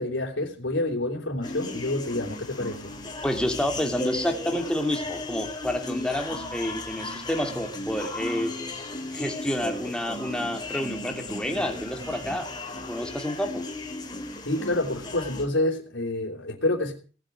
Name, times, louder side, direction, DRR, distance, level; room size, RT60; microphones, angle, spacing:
voice 1, 0.0-2.9 14.4-16.9, left 2 dB, 75° left, 3.9 m, -28 dB
sound 1, 1.4-15.5, left 2 dB, 20° left, 3.5 m, -36 dB
voice 2, 3.2-8.5 9.1-12.5 12.9-13.6, left 1 dB, 5° left, 2.9 m, -29 dB
19.0 x 9.1 x 8.1 m
head